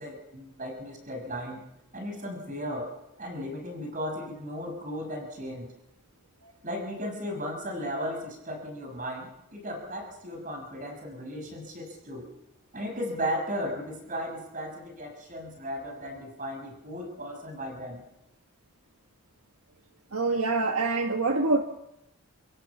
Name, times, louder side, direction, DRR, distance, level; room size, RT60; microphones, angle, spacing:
voice 1, 0.0-1.6 1.9-2.9 3.2-5.7 6.6-12.3 12.7-18.0, equal, 35° right, 3 dB, 6.1 m, -36 dB
voice 2, 20.1-21.6, right 3 dB, 80° right, 4 dB, 1.8 m, -25 dB
29.0 x 16.5 x 7.2 m, 0.86 s
head